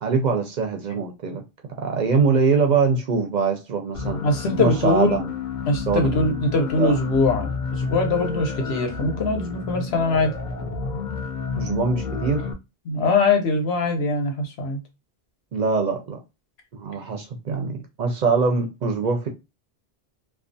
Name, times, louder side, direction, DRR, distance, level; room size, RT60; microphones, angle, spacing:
voice 1, 0.0-1.4 1.8-4.2 4.6-5.3 5.9-6.5 6.8-7.0 11.6-12.4 15.5-16.2 16.7-19.3, right 4 dB, 55° right, 0.5 m, -23 dB
sound 1, 3.9-12.5, left 5 dB, 60° left, 0.6 m, -30 dB
voice 2, 4.2-5.2 5.7-10.3 12.9-14.8, left 3 dB, 90° left, 1.0 m, -22 dB
2.3 x 2.3 x 2.5 m
omnidirectional pair, 1.0 m